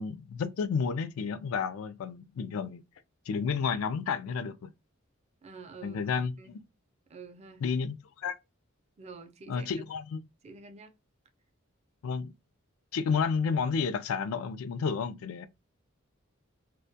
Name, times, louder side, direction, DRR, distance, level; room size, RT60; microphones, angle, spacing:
voice 1, 0.0-2.8 3.3-4.7 5.8-6.3 7.6-8.4 9.5-10.2 12.0-12.3 12.9-15.5, left 5 dB, 85° left, 0.3 m, -31 dB
voice 2, 5.4-6.6 7.1-7.6 9.0-9.9 10.4-10.9, right 4 dB, 30° right, 0.4 m, -48 dB
2.2 x 2.1 x 2.6 m
head